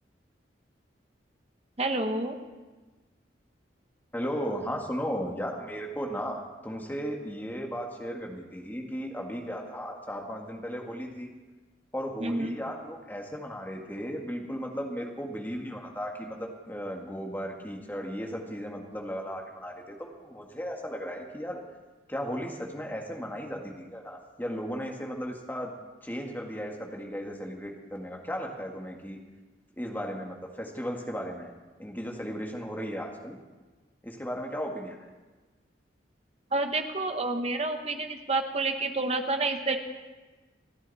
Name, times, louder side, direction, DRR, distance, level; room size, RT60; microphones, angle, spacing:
voice 1, 1.8-2.4 12.2-12.6 36.5-39.8, right 2 dB, 35° right, 6 dB, 1.1 m, -29 dB
voice 2, 4.1-11.3 11.9-21.6 22.1-25.7 26.0-29.2 29.8-31.5 31.8-33.4 34.0-35.1, equal, 10° left, 1 dB, 1.8 m, -35 dB
28.0 x 10.5 x 4.2 m, 1.3 s
head